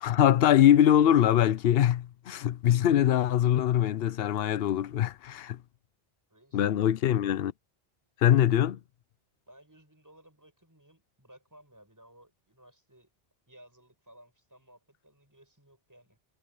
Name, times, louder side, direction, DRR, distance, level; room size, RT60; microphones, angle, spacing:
voice 1, 0.0-5.6 6.5-7.5 8.2-8.8, left 11 dB, 70° left, 0.8 m, -23 dB
voice 2, 6.3-7.3 9.5-13.1 13.5-16.2, right 1 dB, 15° right, 8.1 m, -58 dB
omnidirectional pair, 1.1 m